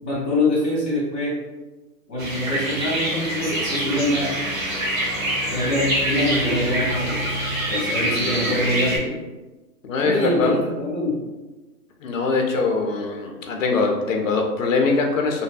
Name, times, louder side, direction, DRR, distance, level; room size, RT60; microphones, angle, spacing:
voice 1, 0.0-1.3 2.1-4.4 5.5-7.2 7.7-9.2 10.0-11.2, left 1 dB, 5° left, -20 dB, 0.6 m, -24 dB
sound 1, 2.2-9.0, right 1 dB, 55° right, 0.8 m, -25 dB
voice 2, 9.8-10.5 12.0-15.4, left 4 dB, 55° left, 3 dB, 0.5 m, -22 dB
2.6 x 2.3 x 2.3 m, 1.2 s
hypercardioid pair, 160°, 48 cm